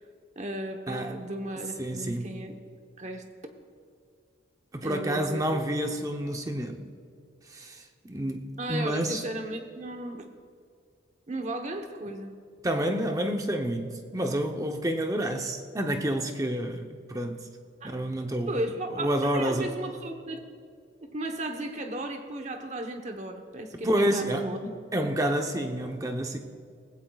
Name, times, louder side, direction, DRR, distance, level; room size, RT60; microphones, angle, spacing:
voice 1, 0.4-2.5 3.0-3.2 4.8-5.9 8.6-10.3 11.3-12.3 17.8-18.0 18.5-20.4 21.0-24.6, right 1 dB, 40° right, 1.0 m, -35 dB
voice 2, 0.9-1.2 1.8-2.4 4.7-6.9 7.5-9.2 12.6-17.5 17.8-18.6 18.9-19.7 23.8-24.5 24.9-26.4, right 1 dB, 20° right, 0.7 m, -29 dB
18.5 x 16.0 x 2.4 m
head